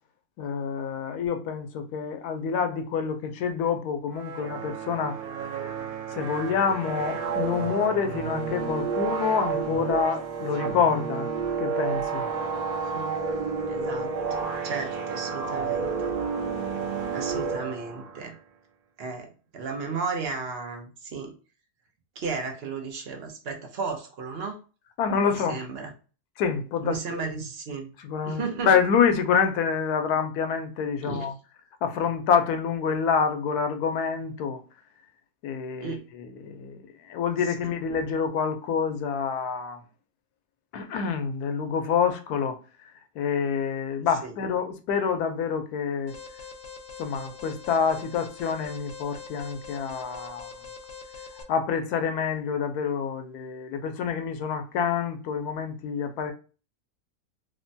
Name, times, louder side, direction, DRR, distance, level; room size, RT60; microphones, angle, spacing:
voice 1, 0.4-5.2 6.1-11.3 11.6-12.3 25.0-25.7 26.4-27.3 28.0-31.3 31.8-34.6 35.4-39.8 40.7-42.6 43.1-46.2 47.0-50.5 51.5-56.3, left 6 dB, 90° left, 1.1 m, -27 dB
sound 1, 4.1-18.2, right 5 dB, 80° right, 1.1 m, -31 dB
voice 2, 13.7-15.9 17.1-18.4 19.0-21.3 22.2-24.6 25.3-25.9 26.8-27.9 28.2-28.7 31.0-31.3 35.8-36.0 37.6-37.7 44.2-44.3, right 4 dB, 55° right, 0.7 m, -34 dB
Alarm, 46.1-51.4, left 5 dB, 65° left, 1.0 m, -43 dB
3.2 x 2.1 x 2.6 m
omnidirectional pair, 1.6 m